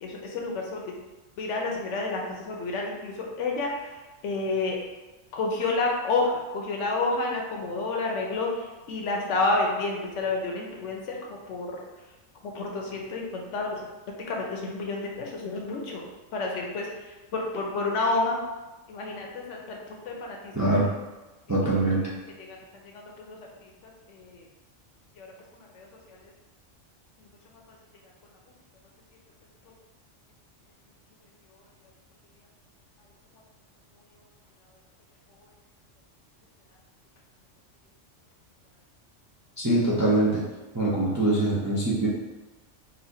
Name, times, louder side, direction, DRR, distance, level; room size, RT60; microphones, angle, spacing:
voice 1, 0.0-0.8 1.4-4.0 4.2-4.8 5.3-11.8 12.4-13.8 14.3-18.4 18.9-20.5 22.5-24.4 25.2-25.3 25.5-26.3 27.2-27.3, left 3 dB, 75° left, 0 dB, 1.0 m, -30 dB
voice 2, 20.5-20.9 21.5-22.1 39.6-40.5 40.7-42.1, right 2 dB, 20° right, -7 dB, 0.4 m, -23 dB
4.2 x 2.5 x 2.7 m, 1.2 s
omnidirectional pair, 1.3 m